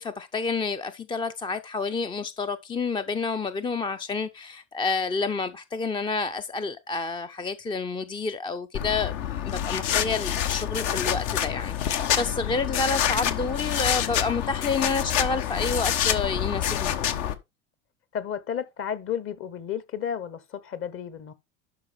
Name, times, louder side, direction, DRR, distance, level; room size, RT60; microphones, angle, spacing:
voice 1, 0.0-16.9, left 4 dB, 15° left, 0.4 m, -29 dB
sound 1, 8.7-17.3, left 10 dB, 60° left, 1.1 m, -27 dB
voice 2, 18.1-21.3, left 8 dB, 35° left, 1.0 m, -32 dB
11.5 x 4.9 x 3.4 m
hypercardioid pair, 80°, 37 cm